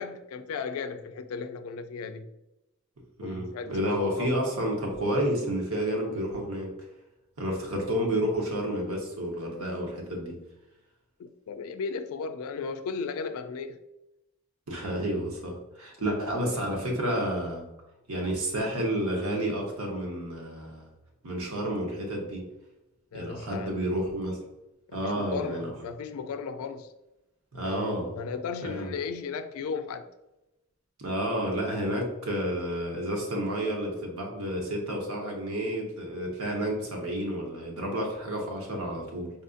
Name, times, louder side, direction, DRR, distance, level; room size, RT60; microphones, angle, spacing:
voice 1, 0.0-2.3 3.2-4.4 11.2-13.8 23.1-24.0 24.9-26.9 27.6-30.1, left 5 dB, 85° left, 0.3 m, -36 dB
voice 2, 3.2-6.7 7.4-10.4 14.7-17.6 18.1-20.8 21.2-22.4 23.1-24.4 24.9-25.7 27.5-28.1 28.6-28.9 31.0-39.3, right 1 dB, 85° right, 0.9 m, -30 dB
4.2 x 2.5 x 2.4 m
head